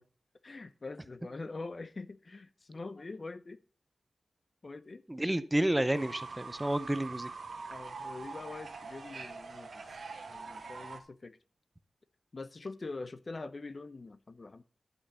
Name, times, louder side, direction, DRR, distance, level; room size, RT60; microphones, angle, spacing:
voice 1, 0.4-3.6 4.6-5.0 7.7-9.9 10.3-11.4 12.3-14.6, left 3 dB, 40° left, 13 dB, 0.7 m, -44 dB
voice 2, 5.1-7.3, right 1 dB, 10° right, 13 dB, 0.6 m, -30 dB
Fowl / Bird, 5.9-11.0, right 4 dB, 70° right, 1.5 m, -44 dB
11.5 x 5.5 x 6.7 m, 0.39 s
wide cardioid pair, 110°, 0 cm